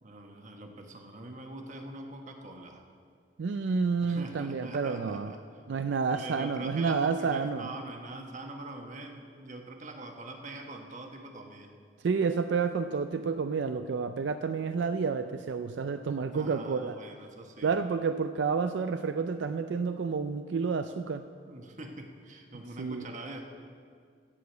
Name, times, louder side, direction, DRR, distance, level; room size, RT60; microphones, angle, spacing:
voice 1, 0.0-2.9 4.0-5.4 6.1-11.8 16.0-17.8 21.5-23.4, right 2 dB, 45° right, 3 dB, 1.2 m, -43 dB
voice 2, 3.4-5.3 5.7-7.7 12.0-17.0 17.6-21.2 22.8-23.0, right 5 dB, 80° right, 8 dB, 0.4 m, -30 dB
14.5 x 4.9 x 8.1 m, 2.1 s
head